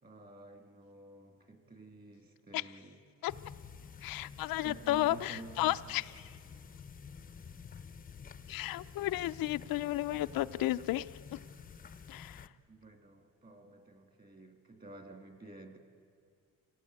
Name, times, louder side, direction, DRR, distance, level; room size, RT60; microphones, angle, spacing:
voice 1, 0.0-3.0 4.6-6.7 12.7-15.8, right 2 dB, 25° right, 5 dB, 2.8 m, -51 dB
sound 1, 3.3-12.5, left 6 dB, 25° left, 0.7 m, -50 dB
voice 2, 4.0-6.3 8.5-11.1 12.1-12.4, left 15 dB, 75° left, 11 dB, 0.6 m, -33 dB
27.0 x 18.0 x 8.7 m, 2.3 s
cardioid pair, 145°, 35 cm